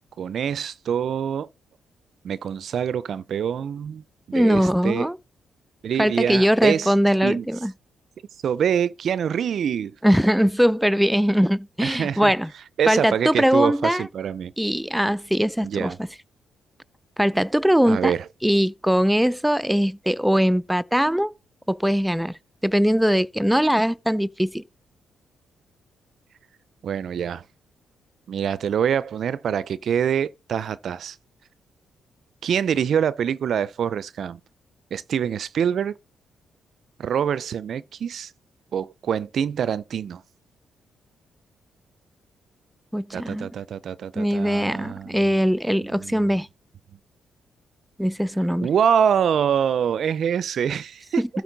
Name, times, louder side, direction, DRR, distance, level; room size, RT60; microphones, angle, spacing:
voice 1, 0.2-1.5 2.2-5.1 5.8-6.9 7.2-7.5 8.4-9.9 11.8-12.3 12.8-14.5 15.6-16.0 17.9-18.2 26.8-27.4 28.3-31.2 32.4-34.4 34.9-35.9 37.0-38.3 38.7-40.2 43.1-45.4 45.9-46.4 48.6-51.2, right 8 dB, 65° right, 0.4 m, -25 dB
voice 2, 4.3-5.2 6.0-7.7 10.0-12.5 12.9-14.1 14.6-15.9 17.2-18.1 18.4-21.3 21.7-24.6 42.9-43.5 44.2-46.5 48.0-48.7 51.2-51.3, equal, 5° right, 0.4 m, -21 dB
12.5 x 4.4 x 4.0 m
supercardioid pair, 50°, 0 cm